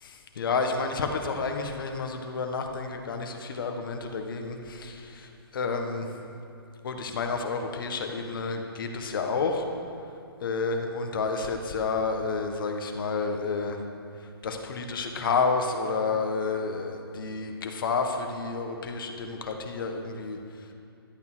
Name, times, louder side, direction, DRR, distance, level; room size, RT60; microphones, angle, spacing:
voice 1, 0.0-6.1 6.8-9.7 10.4-13.8 14.4-20.4, left 4 dB, 60° left, 4 dB, 1.6 m, -30 dB
12.0 x 8.6 x 6.3 m, 2.6 s
hypercardioid pair, 140°, 13 cm